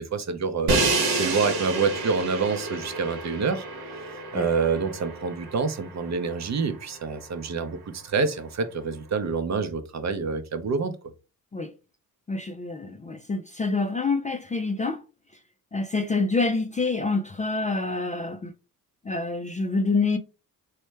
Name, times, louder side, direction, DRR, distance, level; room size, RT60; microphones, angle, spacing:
voice 1, 0.0-3.9 4.3-10.9, right 5 dB, 45° right, 0.6 m, -27 dB
Crash cymbal, 0.7-6.7, right 3 dB, 75° right, 1.0 m, -29 dB
voice 2, 12.3-15.0 15.7-18.5 19.0-20.2, left 3 dB, 20° left, 0.3 m, -27 dB
3.2 x 2.1 x 3.2 m
supercardioid pair, 60°, 38 cm